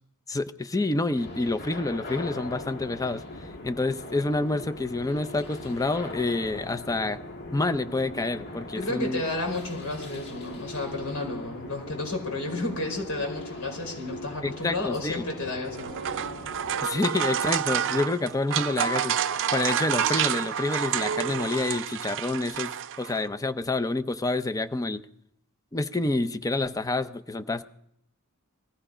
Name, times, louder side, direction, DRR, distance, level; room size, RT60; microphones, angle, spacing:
voice 1, 0.3-3.2 3.6-7.2 7.5-9.2 14.4-15.2 16.8-22.7 23.0-25.0 25.7-27.6, left 2 dB, 15° left, 11 dB, 0.6 m, -28 dB
sound 1, 1.1-16.8, left 2 dB, 50° left, 1.7 m, -40 dB
voice 2, 8.7-16.0, left 2 dB, 80° left, 1 dB, 5.3 m, -32 dB
sound 2, 15.6-23.3, right 9 dB, 60° right, 0.5 m, -29 dB
20.0 x 14.5 x 5.0 m, 0.72 s
head